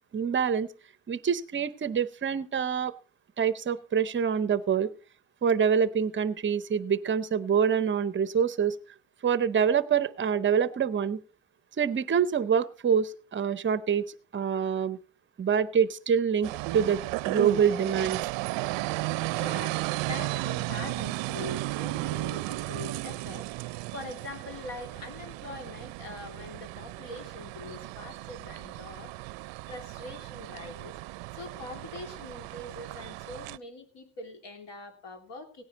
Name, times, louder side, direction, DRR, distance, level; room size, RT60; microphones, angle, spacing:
voice 1, 0.1-0.7 1.1-2.9 3.4-4.9 5.4-8.8 9.2-11.2 11.8-15.0 15.4-17.0 17.2-18.2, right 7 dB, 25° right, 16 dB, 0.7 m, -26 dB
sound 1, 16.4-33.6, right 20 dB, 65° right, 0.6 m, -35 dB
voice 2, 19.3-29.1 29.7-30.9 31.3-35.6, left 2 dB, 60° left, 6 dB, 3.1 m, -43 dB
17.5 x 9.6 x 4.1 m, 0.36 s
cardioid pair, 130°, 48 cm